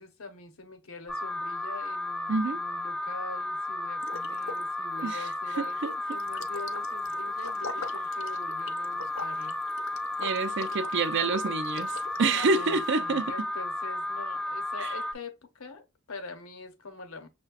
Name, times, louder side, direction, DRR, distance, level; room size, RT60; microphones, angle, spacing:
voice 1, 0.0-9.6 12.3-17.3, left 3 dB, 85° left, 0.8 m, -44 dB
Alarm, 1.1-15.1, left 1 dB, 5° left, 0.3 m, -33 dB
voice 2, 2.3-2.6 5.0-5.3 5.6-5.7 10.2-13.3 14.8-14.9, right 4 dB, 60° right, 0.5 m, -27 dB
Liquid, 4.0-4.7 4.9-12.9, left 4 dB, 65° left, 0.6 m, -43 dB
6.4 x 2.2 x 2.3 m
head